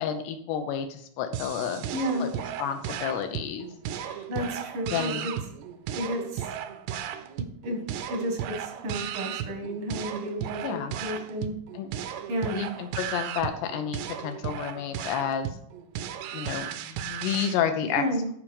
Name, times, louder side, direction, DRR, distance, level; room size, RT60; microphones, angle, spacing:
voice 1, 0.0-1.8 2.2-2.3 2.6-3.7 4.0-4.1 4.9-5.3 10.6-10.9 11.7-11.9 12.4-15.5 16.3-18.0, left 8 dB, 80° left, 7 dB, 2.5 m, -30 dB
sound 1, 1.3-17.6, right 10 dB, 80° right, 2.4 m, -35 dB
voice 2, 1.9-2.3 4.3-5.3 5.9-6.5 7.6-7.8 8.1-11.5 12.3-12.7 17.9-18.3, equal, 65° right, 3 dB, 1.4 m, -31 dB
12.5 x 5.0 x 5.3 m, 0.67 s
omnidirectional pair, 5.4 m